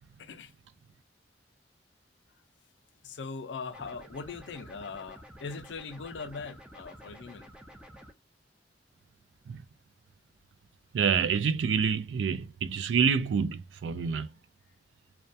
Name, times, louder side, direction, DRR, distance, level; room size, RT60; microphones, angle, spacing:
voice 1, 0.2-0.5 3.0-7.5, left 4 dB, 75° left, 0.4 m, -40 dB
sound 1, 3.7-8.1, equal, 5° right, 0.4 m, -50 dB
voice 2, 10.9-14.3, right 6 dB, 80° right, 0.3 m, -27 dB
2.2 x 2.2 x 2.6 m
head